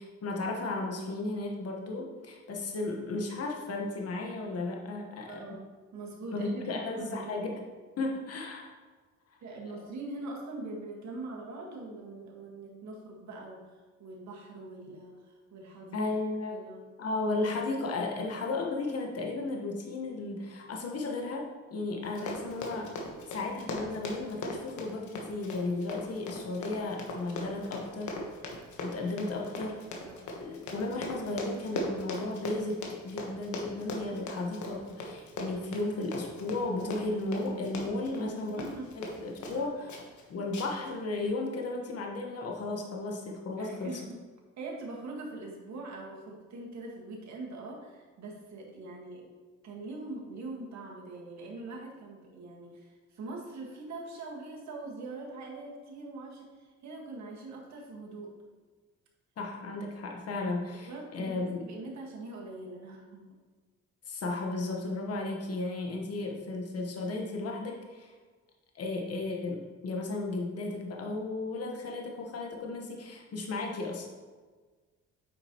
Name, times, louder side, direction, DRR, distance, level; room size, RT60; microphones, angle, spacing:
voice 1, 0.0-5.4 6.3-7.5 8.0-8.7 15.9-16.5 17.0-22.9 23.3-28.2 28.8-29.8 30.4-38.6 39.0-40.0 40.3-44.0 59.4-61.6 64.1-68.1 68.7-74.1, left 2 dB, 55° left, 0 dB, 1.3 m, -34 dB
voice 2, 5.3-7.5 9.4-13.7 14.0-16.0 16.5-16.8 17.3-17.4 29.4-29.7 30.1-30.3 38.0-38.9 39.5-39.7 43.6-44.2 44.6-49.3 49.6-58.3 60.9-63.3, right 2 dB, 65° right, -1 dB, 1.8 m, -43 dB
Run, 22.0-39.6 39.9-40.2 40.5-40.9 41.2-41.3, left 2 dB, 75° left, 1.3 m, -39 dB
8.6 x 5.2 x 3.0 m, 1.4 s
cardioid pair, 90°, 30 cm